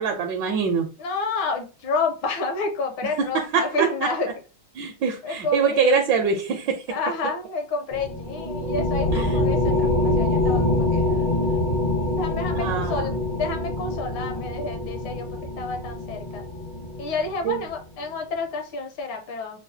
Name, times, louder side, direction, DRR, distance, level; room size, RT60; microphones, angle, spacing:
voice 1, 0.0-0.9 3.3-4.1 4.8-6.8 9.1-9.4 12.5-13.1 17.4-17.6, right 6 dB, 70° right, 3 dB, 1.1 m, -24 dB
voice 2, 1.0-4.3 5.2-6.0 6.9-11.3 12.1-16.5 17.0-19.6, left 3 dB, 75° left, 5 dB, 1.4 m, -29 dB
sound 1, 7.9-17.7, left 2 dB, 55° left, 0.5 m, -25 dB
5.8 x 2.2 x 2.7 m, 0.34 s
omnidirectional pair, 2.4 m